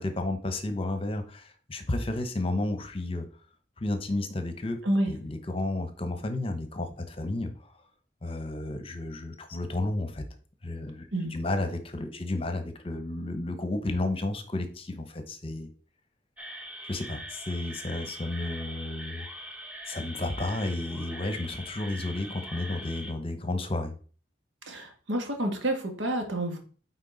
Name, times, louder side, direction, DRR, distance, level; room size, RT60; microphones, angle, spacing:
voice 1, 0.0-3.2 3.8-4.8 5.1-7.7 8.2-10.2 10.6-15.7 16.8-19.3 19.9-23.9, left 2 dB, 30° left, 8 dB, 0.9 m, -32 dB
sound 1, 16.4-23.1, equal, 5° right, 1.0 m, -42 dB
voice 2, 24.7-26.6, right 1 dB, 85° right, 4 dB, 1.7 m, -29 dB
9.1 x 4.2 x 4.0 m, 0.40 s
head